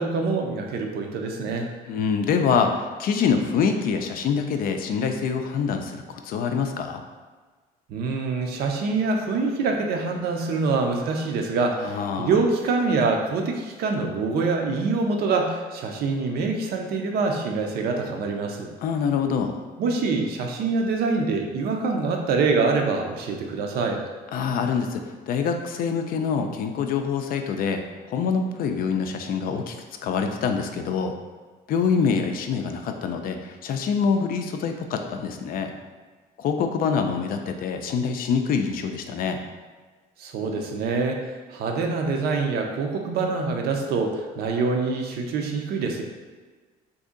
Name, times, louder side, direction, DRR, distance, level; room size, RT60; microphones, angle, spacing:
voice 1, 0.0-1.7 7.9-18.7 19.8-24.0 40.2-46.0, right 4 dB, 70° right, 3 dB, 0.5 m, -25 dB
voice 2, 1.9-7.0 11.8-12.3 18.8-19.5 24.3-29.8 30.0-31.1 31.7-35.7 36.4-39.4, left 6 dB, 60° left, 5 dB, 0.4 m, -25 dB
2.7 x 2.6 x 3.7 m, 1.4 s
cardioid pair, 110°, 17 cm